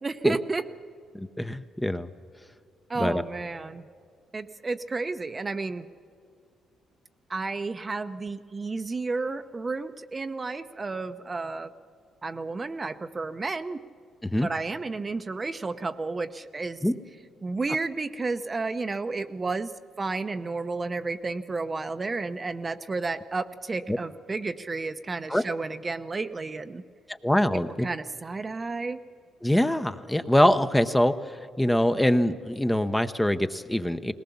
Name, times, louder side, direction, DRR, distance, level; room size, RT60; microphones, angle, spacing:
voice 1, 0.0-0.6 2.9-3.8 4.3-5.9 7.3-11.7 12.2-13.8 14.4-16.8 17.4-19.7 20.0-26.8 27.8-29.0, right 3 dB, 30° right, 9 dB, 0.7 m, -31 dB
voice 2, 1.1-2.1 2.9-3.2 14.2-14.5 16.8-16.9 23.9-24.0 25.3-25.4 27.1-27.9 29.4-34.1, left 1 dB, 5° left, 9 dB, 0.8 m, -24 dB
20.0 x 18.5 x 7.1 m, 2.3 s
cardioid pair, 90°, 0 cm